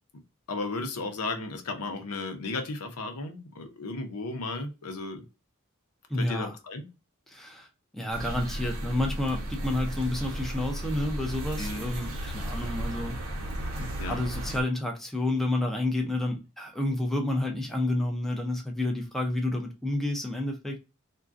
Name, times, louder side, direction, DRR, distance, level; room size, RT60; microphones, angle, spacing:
voice 1, 0.5-5.2 6.2-6.8 11.6-11.9 14.0-14.2, left 3 dB, 90° left, 0.7 m, -34 dB
voice 2, 6.1-6.5 7.3-7.7 7.9-13.2 13.8-20.8, left 1 dB, ahead, 0.5 m, -30 dB
sound 1, 8.1-14.6, right 1 dB, 65° right, 0.7 m, -34 dB
3.6 x 2.2 x 2.5 m
head